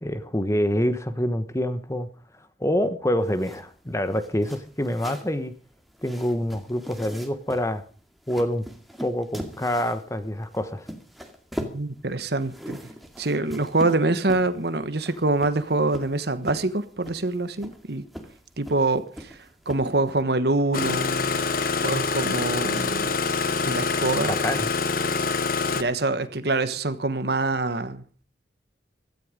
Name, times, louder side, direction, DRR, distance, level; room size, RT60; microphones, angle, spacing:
voice 1, 0.0-2.1 2.6-5.5 6.0-7.8 8.3-8.6 9.0-10.9 24.3-24.7, equal, 15° left, 1.2 m, -26 dB
sound 1, 3.2-20.2, equal, ahead, 2.2 m, -41 dB
voice 2, 11.6-12.8 13.2-18.0 18.6-19.4 19.7-21.4 21.8-23.2 23.6-24.4 25.7-28.0, right 2 dB, 55° right, 1.3 m, -25 dB
Engine starting, 20.7-25.8, left 4 dB, 50° left, 1.1 m, -25 dB
16.5 x 13.5 x 5.2 m
head